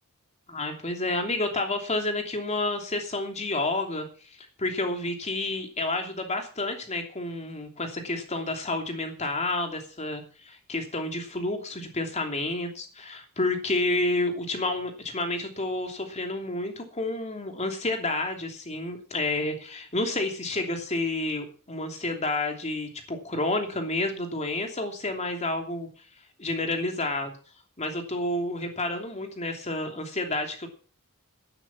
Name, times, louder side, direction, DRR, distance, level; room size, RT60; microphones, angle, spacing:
voice 1, 0.5-4.1 4.6-25.9 26.4-27.3 27.8-30.7, left 2 dB, 30° left, 4 dB, 3.0 m, -30 dB
11.5 x 11.5 x 6.0 m, 0.38 s
head